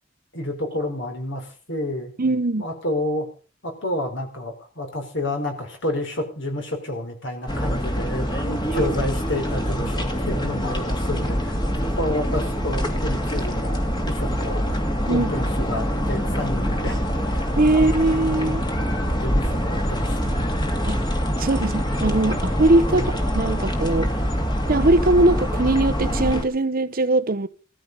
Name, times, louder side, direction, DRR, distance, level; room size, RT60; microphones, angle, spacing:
voice 1, 0.3-2.1 2.5-3.3 3.6-11.6 11.9-14.8 15.1-17.4 17.7-18.5 19.1-20.6 22.9-23.2, left 1 dB, 60° left, 4.7 m, -30 dB
voice 2, 2.2-2.7 8.7-8.9 15.1-15.3 17.6-18.6 20.9-21.0 21.4-23.0 23.3-24.1 24.7-27.5, right 2 dB, 45° right, 0.8 m, -20 dB
sound 1, 7.5-26.4, equal, 20° left, 2.2 m, -24 dB
17.5 x 14.0 x 5.5 m
head